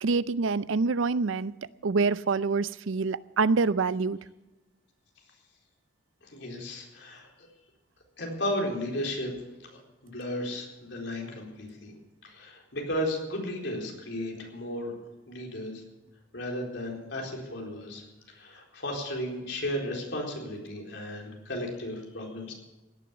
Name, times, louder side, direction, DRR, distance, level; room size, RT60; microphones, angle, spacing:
voice 1, 0.0-1.5 1.8-4.2, right 4 dB, 85° right, 17 dB, 0.5 m, -26 dB
voice 2, 6.2-7.3 8.2-9.3 9.6-11.9 12.2-14.9 15.3-15.8 16.3-18.0 18.3-22.5, left 1 dB, 65° left, 0 dB, 4.2 m, -34 dB
17.0 x 10.5 x 7.0 m, 1.0 s
head